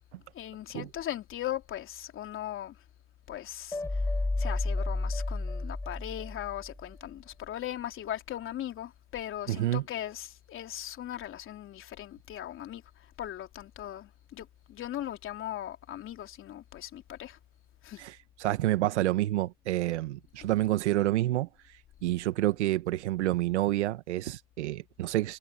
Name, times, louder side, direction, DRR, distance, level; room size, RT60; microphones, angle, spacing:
voice 1, 0.3-2.8 3.3-4.1 4.4-17.4 17.8-18.0, left 12 dB, 35° left, 3.4 m, -39 dB
sound 1, 3.7-6.9, left 2 dB, 10° left, 5.0 m, -31 dB
voice 2, 9.5-9.8 18.0-18.1 18.4-21.5 22.0-25.4, right 15 dB, 85° right, 1.9 m, -28 dB
supercardioid pair, 115°, 34 cm